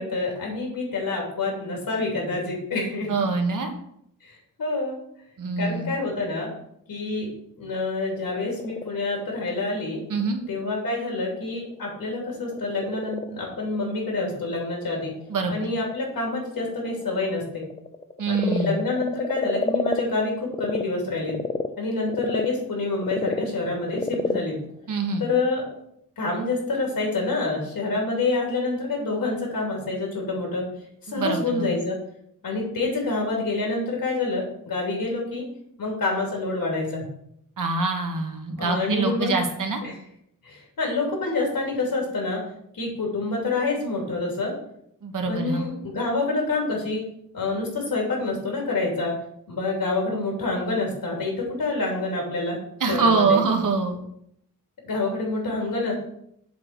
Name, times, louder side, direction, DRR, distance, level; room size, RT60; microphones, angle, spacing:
voice 1, 0.0-3.3 4.2-5.0 5.6-6.5 6.9-7.3 7.6-10.0 10.5-15.1 15.5-17.7 18.3-21.4 21.8-24.6 25.2-25.6 26.2-30.6 31.0-32.0 32.4-35.4 35.8-37.0 38.6-39.4 39.8-40.0 40.4-42.4 42.7-44.5 45.3-47.0 47.3-49.1 49.5-52.6 52.9-53.4 54.8-55.9, left 3 dB, 85° left, -1 dB, 3.0 m, -27 dB
voice 2, 3.1-3.7 5.4-5.9 10.1-10.4 15.3-15.5 18.2-18.8 24.9-25.2 31.1-31.7 37.6-39.8 45.0-45.6 52.8-54.0, right 4 dB, 65° right, 4 dB, 1.3 m, -24 dB
Frog, 8.0-20.8 21.2-25.8, left 3 dB, 20° left, 0.4 m, -33 dB
7.5 x 3.9 x 6.2 m, 0.72 s
wide cardioid pair, 165°, 34 cm